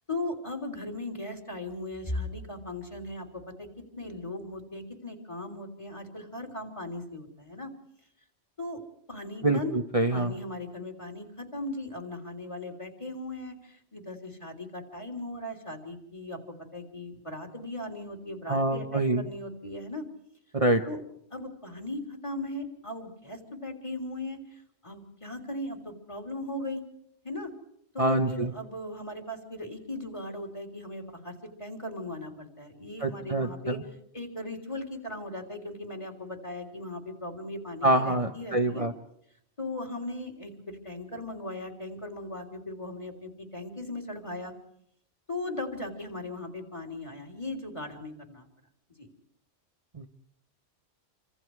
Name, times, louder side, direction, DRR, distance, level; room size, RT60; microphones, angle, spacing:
voice 1, 0.1-7.7 8.6-8.8 9.1-9.7 10.1-16.4 16.7-20.0 20.8-21.0 21.3-26.8 27.2-27.5 27.9-33.8 34.1-38.9 39.6-44.5 45.3-48.5 49.0-49.1, left 1 dB, 25° left, 3 dB, 3.7 m, -38 dB
voice 2, 9.4-10.3 18.5-19.2 20.5-20.8 28.0-28.5 33.0-33.8 37.8-38.9 49.9-50.1, right 2 dB, 30° right, 4 dB, 1.2 m, -25 dB
28.5 x 26.0 x 4.8 m, 0.72 s
omnidirectional pair, 1.2 m